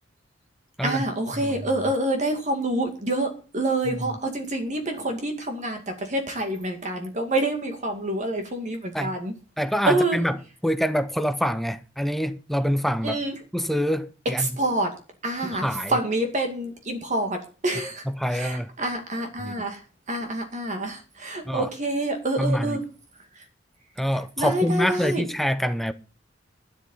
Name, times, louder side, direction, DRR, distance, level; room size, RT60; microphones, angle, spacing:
voice 1, 0.8-9.4 9.9-10.2 13.0-13.3 14.4-14.9 15.2-18.0 18.3-19.8 20.1-22.8 23.4-23.5 24.4-25.2, right 1 dB, 40° right, 2.2 m, -27 dB
voice 2, 9.6-10.4 10.6-13.2 13.5-14.5 15.4-16.0 18.2-18.7 19.4-19.6 21.5-21.7 22.4-22.8 24.0-25.9, equal, ahead, 0.7 m, -26 dB
12.0 x 10.0 x 5.6 m
head